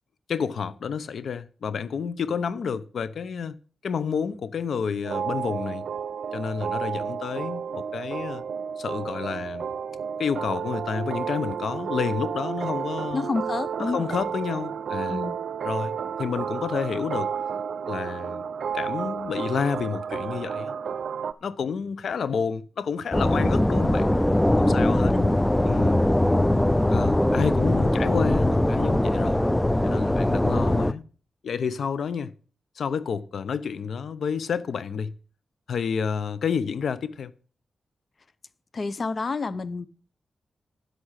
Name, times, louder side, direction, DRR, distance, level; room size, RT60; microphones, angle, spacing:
voice 1, 0.3-3.6 3.8-5.8 6.3-8.4 8.8-9.7 10.2-13.3 13.8-15.2 15.6-17.3 17.9-18.4 18.7-20.7 21.4-24.1 24.6-25.1 25.6-26.0 26.9-29.4 29.8-31.0 31.4-32.3 32.8-35.1 35.7-37.3, left 6 dB, 75° left, 0.8 m, -29 dB
sound 1, 5.0-21.3, right 7 dB, 75° right, 0.6 m, -31 dB
voice 2, 13.1-14.2 15.1-15.4 24.7-25.4 26.5-26.8 38.7-39.9, left 3 dB, 50° left, 0.9 m, -30 dB
sound 2, 23.1-30.9, left 1 dB, 10° left, 0.6 m, -21 dB
10.0 x 8.2 x 5.8 m
cardioid pair, 70°, 0 cm